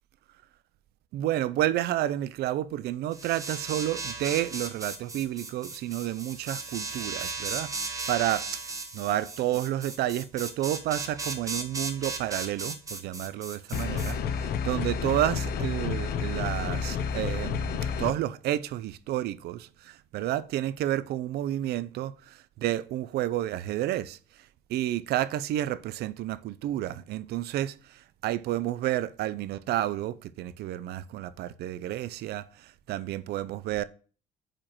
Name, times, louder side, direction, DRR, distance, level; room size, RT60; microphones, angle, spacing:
voice 1, 1.1-8.5 8.9-33.8, right 13 dB, 70° right, 0.5 m, -30 dB
sound 1, 3.1-14.1, right 3 dB, 20° right, 1.0 m, -36 dB
sound 2, 13.7-18.1, left 6 dB, 70° left, 0.8 m, -30 dB
8.7 x 5.0 x 3.0 m
cardioid pair, 110°, 17 cm